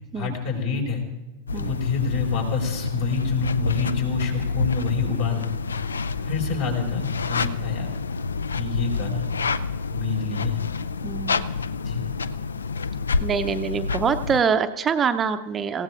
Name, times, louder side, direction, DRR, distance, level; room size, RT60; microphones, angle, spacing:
voice 1, 0.1-1.0 1.5-5.4 6.2-7.9 8.5-9.2 9.9-10.6 11.8-12.0, left 5 dB, 50° left, 1 dB, 5.1 m, -27 dB
sound 1, 1.5-14.4, left 4 dB, 70° left, 0.4 m, -28 dB
voice 2, 11.0-11.5 13.2-15.8, right 6 dB, 20° right, 10 dB, 0.7 m, -25 dB
27.0 x 16.5 x 2.5 m, 1.1 s
figure-of-eight pair, 90°, 0 cm